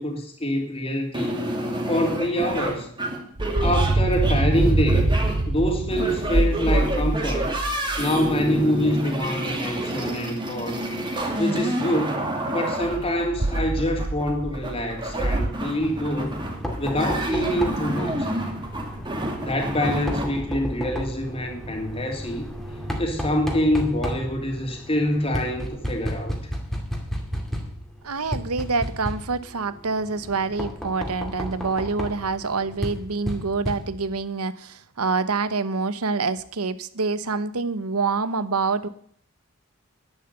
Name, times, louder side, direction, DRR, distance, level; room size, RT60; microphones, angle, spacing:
voice 1, 0.0-1.4 1.9-2.9 3.6-5.1 5.5-7.5 8.0-10.8 11.4-16.4 16.8-18.1 19.4-22.4 23.0-26.3, equal, 25° left, 3 dB, 2.8 m, -25 dB
sound 1, 1.1-20.2, right 1 dB, 20° right, 2.6 m, -29 dB
sound 2, 3.4-8.5 12.8-15.5, right 2 dB, 35° right, 0.8 m, -24 dB
Knock, 15.8-34.2, equal, ahead, 2.3 m, -33 dB
voice 2, 28.0-38.9, right 4 dB, 80° right, 15 dB, 1.0 m, -26 dB
11.0 x 10.5 x 6.8 m, 0.63 s
head